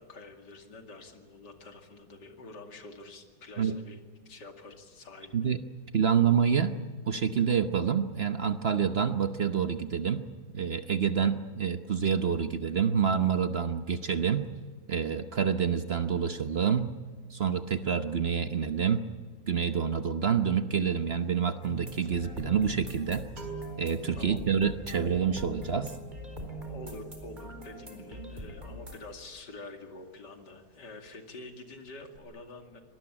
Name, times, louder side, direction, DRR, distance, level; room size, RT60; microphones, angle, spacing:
voice 1, 0.0-5.5 24.2-24.4 26.6-32.8, left 2 dB, 60° left, 5 dB, 3.0 m, -47 dB
voice 2, 5.9-6.8 7.1-10.3 10.5-14.5 14.9-16.9 17.3-19.0 19.5-23.3 23.8-25.9, right 7 dB, 50° right, 9 dB, 0.8 m, -27 dB
sound 1, 21.1-21.2 21.4-30.0 30.2-30.5 30.7-31.6 31.8-32.2, right 3 dB, 80° right, 4.4 m, -50 dB
sound 2, 21.6-29.0, right 1 dB, 20° right, 4.4 m, -42 dB
25.0 x 19.5 x 8.8 m, 1.5 s
omnidirectional pair, 2.2 m